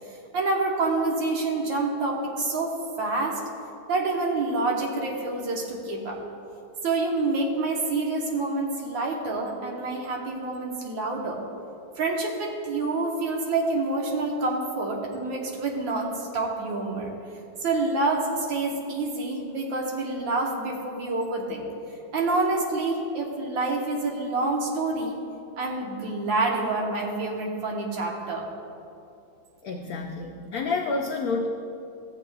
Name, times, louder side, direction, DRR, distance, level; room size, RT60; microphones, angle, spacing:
voice 1, 0.3-2.7 3.0-3.4 3.9-6.2 6.8-11.4 12.0-17.1 17.6-21.6 22.1-25.1 25.6-28.5, right 3 dB, 75° right, -1 dB, 1.8 m, -27 dB
voice 2, 29.6-31.5, left 3 dB, 80° left, 1 dB, 0.8 m, -29 dB
14.0 x 8.0 x 2.3 m, 2.6 s
omnidirectional pair, 2.1 m